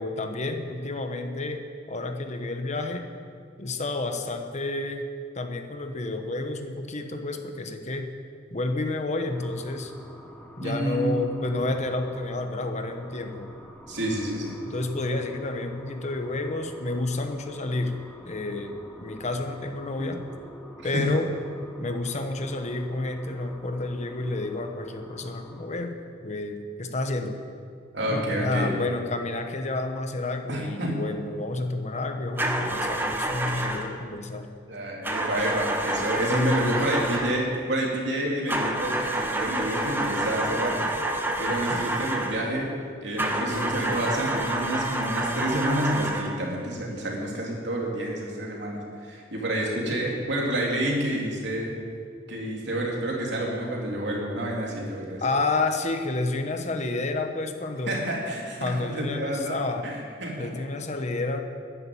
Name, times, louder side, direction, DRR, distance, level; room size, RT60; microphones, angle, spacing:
voice 1, 0.0-3.1 3.6-5.1 5.3-8.1 8.5-10.0 10.6-13.5 14.6-20.2 20.8-21.3 21.8-26.0 26.2-27.4 28.1-34.5 36.2-36.9 41.6-41.8 55.2-58.1 58.6-59.9 60.4-61.4, left 2 dB, 40° left, 6 dB, 1.1 m, -30 dB
sound 1, 9.2-25.7, equal, 5° left, 1.6 m, -47 dB
voice 2, 10.6-11.2 13.9-14.6 20.0-20.1 20.9-21.1 27.9-28.7 30.5-31.0 34.7-40.9 41.4-42.7 43.0-51.7 52.3-55.2 57.9-59.9 60.2-60.5, right 1 dB, 70° right, -2 dB, 3.5 m, -29 dB
sound 2, 32.4-34.0 35.0-37.5 38.5-42.5 43.2-46.4, right 1 dB, 10° right, 1.2 m, -28 dB
12.5 x 10.5 x 8.9 m, 2.1 s
head